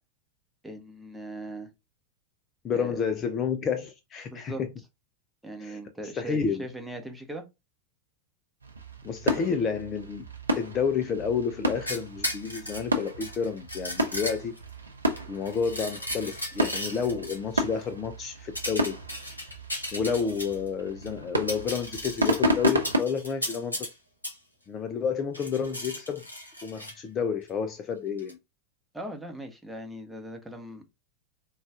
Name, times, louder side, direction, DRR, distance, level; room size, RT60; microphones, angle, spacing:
voice 1, 0.6-1.7 2.7-3.0 4.3-4.6 5.4-7.4 9.3-9.4 28.9-30.8, right 1 dB, 5° right, 0.8 m, -39 dB
voice 2, 2.6-4.7 5.6-5.8 6.2-6.6 9.0-10.3 10.5-14.5 15.3-19.0 19.9-23.9 24.7-26.3 26.6-28.4, left 6 dB, 25° left, 0.4 m, -30 dB
sound 1, 8.6-23.0, equal, 75° right, 0.7 m, -32 dB
sound 2, 11.9-14.7 15.2-17.4 18.6-20.7 21.1-21.2 21.4-23.9 24.2-24.4 25.3-26.9 28.2-28.3, left 1 dB, 85° left, 1.0 m, -36 dB
3.9 x 2.3 x 3.5 m
figure-of-eight pair, 90°, 0 cm